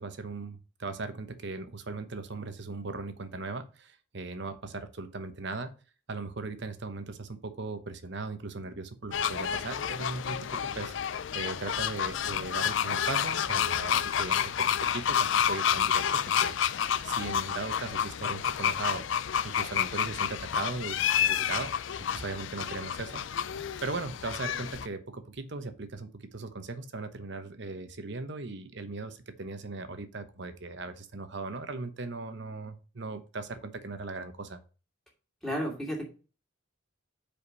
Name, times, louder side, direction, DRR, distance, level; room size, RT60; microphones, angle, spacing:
voice 1, 0.0-5.7 6.1-10.9 11.3-19.1 19.4-21.7 22.1-34.6, right 3 dB, 60° right, 9 dB, 0.9 m, -38 dB
sound 1, 9.1-24.9, left 8 dB, 65° left, 0.4 m, -29 dB
voice 2, 35.4-36.0, equal, ahead, -3 dB, 2.5 m, -32 dB
5.1 x 5.0 x 6.2 m, 0.35 s
head